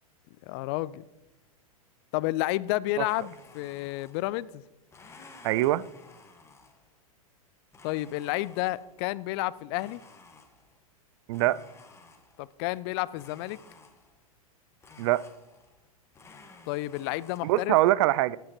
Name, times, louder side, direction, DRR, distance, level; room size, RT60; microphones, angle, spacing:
voice 1, 0.5-1.0 2.1-4.6 7.8-10.0 12.4-13.6 16.7-17.8, left 18 dB, 45° left, 0.4 m, -31 dB
Domestic sounds home sounds, 3.0-4.5 4.9-7.0 7.7-9.0 9.7-10.9 11.3-12.5 13.1-14.3 14.8-15.9 16.1-17.4, left 3 dB, 15° left, 1.3 m, -54 dB
voice 2, 5.4-5.9 11.3-11.6 15.0-15.2 17.4-18.4, right 16 dB, 50° right, 0.4 m, -23 dB
15.0 x 9.1 x 2.9 m
hypercardioid pair, 105°, 19 cm